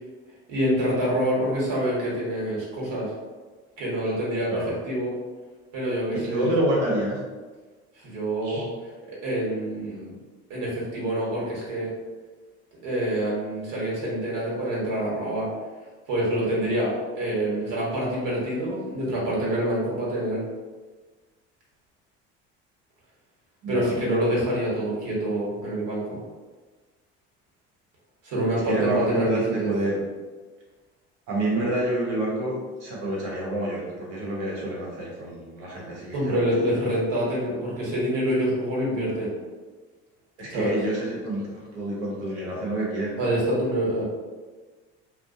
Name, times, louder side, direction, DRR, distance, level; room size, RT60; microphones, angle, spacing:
voice 1, 0.5-3.1 3.8-5.1 5.7-6.5 8.0-8.7 9.1-10.1 10.5-11.9 12.8-15.5 16.1-20.4 23.7-26.2 28.2-29.7 36.1-39.3 40.5-40.7 43.2-44.0, right 1 dB, 65° right, -5 dB, 1.1 m, -26 dB
voice 2, 6.1-7.2 8.4-8.6 23.6-23.9 28.7-30.0 31.3-36.4 40.4-43.2, right 1 dB, 85° right, -3 dB, 0.8 m, -28 dB
2.5 x 2.1 x 2.5 m, 1.3 s
hypercardioid pair, 65°, 34 cm